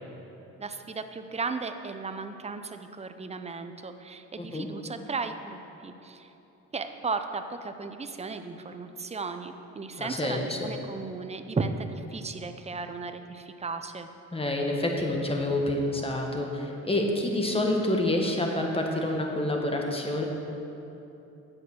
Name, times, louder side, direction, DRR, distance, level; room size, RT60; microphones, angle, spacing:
voice 1, 0.6-6.3 6.7-14.1, right 4 dB, 20° right, 8 dB, 0.7 m, -35 dB
voice 2, 4.4-4.7 10.0-10.7 14.3-20.3, left 1 dB, 20° left, 1 dB, 1.6 m, -28 dB
9.8 x 8.0 x 6.2 m, 3.0 s
cardioid pair, 90°, 30 cm